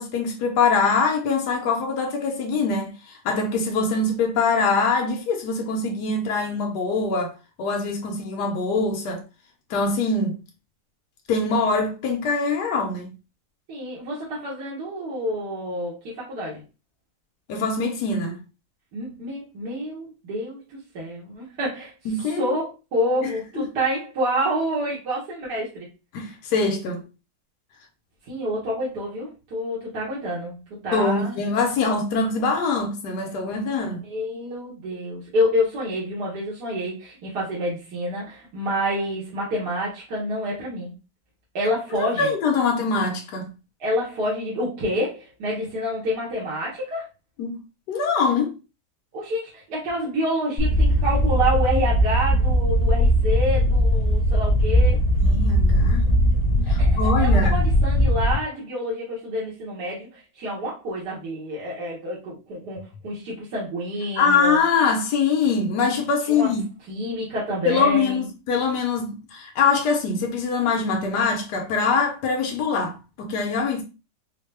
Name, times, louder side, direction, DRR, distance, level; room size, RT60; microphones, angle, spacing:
voice 1, 0.0-9.2 9.7-10.4 11.3-13.1 17.5-18.4 22.1-22.5 23.2-23.3 26.1-27.0 30.9-34.0 41.9-43.5 47.4-47.6 47.9-48.5 55.2-56.1 56.7-57.6 64.2-66.6 67.6-73.8, left 4 dB, 85° left, 1.4 m, -23 dB
voice 2, 13.7-16.6 18.9-21.9 22.4-25.9 28.3-31.4 33.6-33.7 34.0-40.9 41.5-42.3 43.8-47.1 49.1-55.0 56.8-64.6 66.3-66.5 66.9-68.2, equal, 80° right, 1.7 m, -28 dB
sound 1, 50.6-58.4, equal, 25° left, 1.2 m, -19 dB
4.6 x 2.1 x 3.3 m
omnidirectional pair, 1.7 m